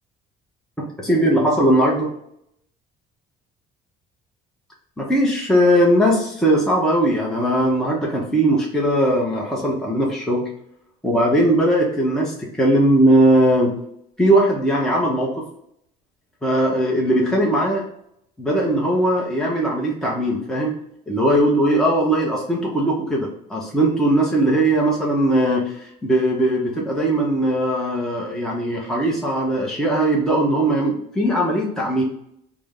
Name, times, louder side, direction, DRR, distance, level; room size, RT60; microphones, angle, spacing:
voice 1, 0.8-2.1 5.0-10.4 11.0-13.7 14.2-15.4 16.4-17.9 18.4-20.7 21.1-32.0, right 1 dB, 5° left, -3 dB, 0.8 m, -19 dB
3.4 x 2.1 x 3.7 m, 0.73 s
cardioid pair, 110°, 17 cm